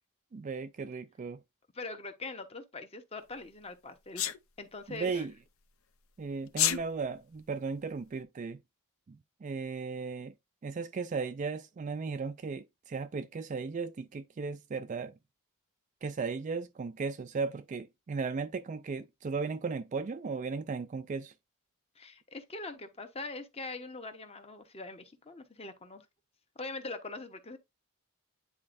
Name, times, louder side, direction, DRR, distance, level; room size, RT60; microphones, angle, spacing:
voice 1, 0.3-1.4 4.9-5.3 6.2-8.6 9.1-10.3 10.6-15.1 16.0-21.3, right 4 dB, 35° right, 0.3 m, -36 dB
voice 2, 1.7-4.3 4.6-5.3 22.0-26.0 26.6-27.6, left 3 dB, 25° left, 1.0 m, -42 dB
Sneeze, 4.2-4.4 6.5-6.8, left 12 dB, 60° left, 0.6 m, -27 dB
9.7 x 4.3 x 2.5 m
head